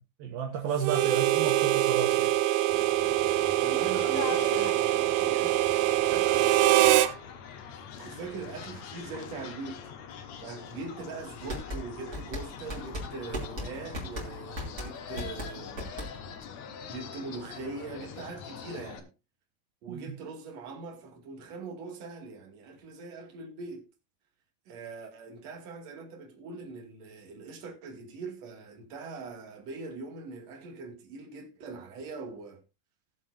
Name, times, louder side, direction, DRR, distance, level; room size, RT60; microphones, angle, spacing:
voice 1, 0.0-2.3 19.9-20.0, right 7 dB, 70° right, 2.9 m, -32 dB
Harmonica, 0.8-7.1, right 14 dB, 85° right, 2.9 m, -24 dB
sound 1, 2.7-19.0, left 7 dB, 80° left, 1.6 m, -43 dB
voice 2, 3.6-7.0 8.0-9.9 10.4-15.9 16.9-19.1 19.8-23.9 24.7-32.6, right 4 dB, 45° right, 2.9 m, -42 dB
sound 2, 11.5-16.4, equal, 25° right, 3.0 m, -37 dB
18.5 x 7.3 x 2.7 m
omnidirectional pair, 5.0 m